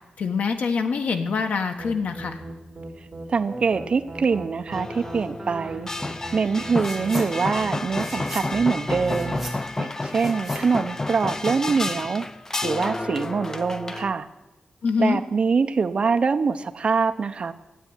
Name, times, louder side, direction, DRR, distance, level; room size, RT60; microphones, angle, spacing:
voice 1, 0.2-2.4 14.8-15.2, left 5 dB, 85° left, 6 dB, 1.4 m, -25 dB
sound 1, 1.8-9.5, right 1 dB, 25° right, 3.4 m, -38 dB
voice 2, 3.3-5.9 6.3-9.4 9.8-12.3 12.6-14.3 15.0-17.5, right 5 dB, 45° right, 8 dB, 0.8 m, -24 dB
sound 2, 4.7-14.1, left 2 dB, 20° left, 0.6 m, -30 dB
sound 3, 6.8-7.3 7.6-11.6, right 1 dB, 5° left, 2.9 m, -41 dB
14.5 x 9.1 x 9.9 m, 1.1 s
wide cardioid pair, 150°, 2 cm